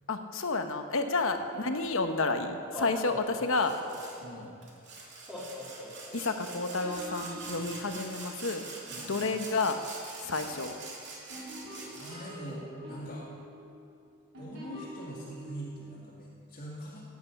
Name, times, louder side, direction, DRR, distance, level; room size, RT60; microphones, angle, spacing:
voice 1, 0.1-3.7 6.1-8.6 9.0-9.8 10.2-10.7, left 3 dB, 65° left, 6 dB, 1.1 m, -30 dB
Laughter, 1.8-1.9 2.6-4.3 5.3-6.5, left 1 dB, 5° right, 2.9 m, -42 dB
Sawing, 3.6-4.2 4.6-12.3, right 3 dB, 55° right, 2.6 m, -45 dB
voice 2, 4.2-4.5 8.9-9.2 11.9-13.3 14.4-17.1, equal, 40° left, -6 dB, 2.3 m, -43 dB
sound 1, 6.3-8.9 10.5-16.2, right 1 dB, 85° right, 4.1 m, -47 dB
16.5 x 9.5 x 5.9 m, 2.4 s
head